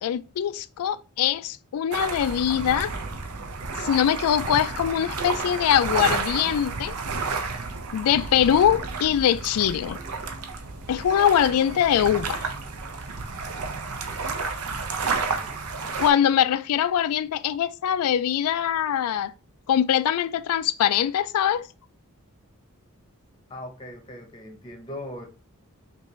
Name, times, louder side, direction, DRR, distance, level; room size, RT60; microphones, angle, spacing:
voice 1, 0.0-2.9 3.8-6.9 7.9-10.0 10.9-12.4 16.0-19.3 19.7-21.7, left 9 dB, 80° left, 0.3 m, -22 dB
sound 1, 1.9-16.1, right 4 dB, 90° right, 0.7 m, -31 dB
voice 2, 15.1-16.3 23.5-25.3, left 1 dB, 20° left, 0.7 m, -41 dB
5.4 x 2.5 x 3.1 m
head